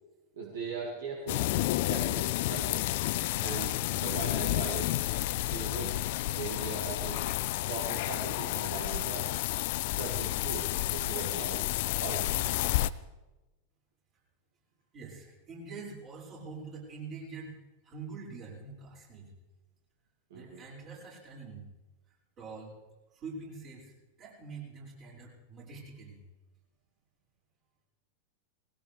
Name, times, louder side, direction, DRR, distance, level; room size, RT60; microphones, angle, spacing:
voice 1, 0.3-2.9 3.4-5.1 5.4-6.0 6.4-7.3 7.7-9.3 9.9-11.6 12.0-12.4 20.3-20.6, right 4 dB, 60° right, -1 dB, 2.2 m, -40 dB
sound 1, 1.3-12.9, left 17 dB, 50° left, 0.4 m, -31 dB
voice 2, 14.9-17.6 17.8-19.3 20.3-21.7 22.4-22.7 23.1-23.9 24.2-26.2, right 4 dB, 35° right, -5 dB, 6.1 m, -45 dB
20.0 x 17.0 x 3.5 m, 1.1 s
figure-of-eight pair, 90°, 0 cm